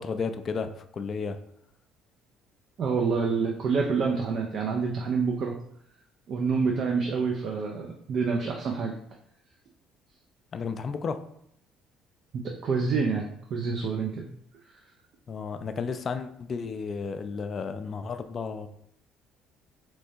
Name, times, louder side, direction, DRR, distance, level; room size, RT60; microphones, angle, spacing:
voice 1, 0.0-1.4 10.5-11.2 15.3-18.7, left 5 dB, 45° left, 10 dB, 0.3 m, -33 dB
voice 2, 2.8-5.5 6.3-8.9 12.4-14.3, right 5 dB, 55° right, 1 dB, 0.5 m, -27 dB
3.6 x 3.1 x 2.7 m, 0.71 s
hypercardioid pair, 55°, 0 cm